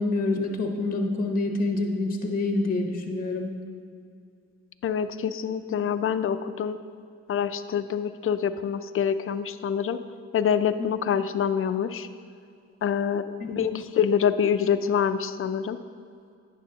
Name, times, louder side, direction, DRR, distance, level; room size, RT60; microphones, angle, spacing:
voice 1, 0.0-3.5 13.4-13.5, left 2 dB, 30° left, 4 dB, 0.9 m, -27 dB
voice 2, 4.8-6.8 7.3-10.0 10.3-12.1 12.8-15.8, left 8 dB, 45° left, 11 dB, 0.5 m, -26 dB
10.5 x 10.0 x 2.8 m, 2.3 s
cardioid pair, 90°, 30 cm